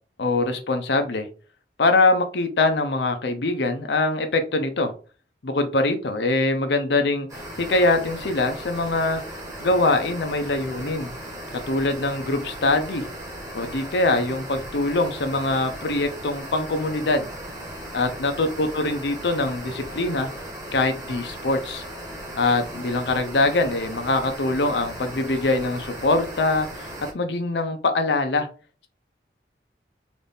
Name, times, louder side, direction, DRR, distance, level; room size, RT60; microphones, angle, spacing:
voice 1, 0.2-1.3 1.8-4.9 5.4-7.3 7.6-9.2 9.6-11.1 11.7-13.0 13.5-17.3 17.9-20.3 20.7-21.8 22.3-26.9 27.1-28.5, left 2 dB, 75° left, 7 dB, 0.6 m, -23 dB
sound 1, 7.3-27.1, right 1 dB, 20° right, 1.3 m, -37 dB
4.0 x 2.6 x 3.4 m, 0.37 s
head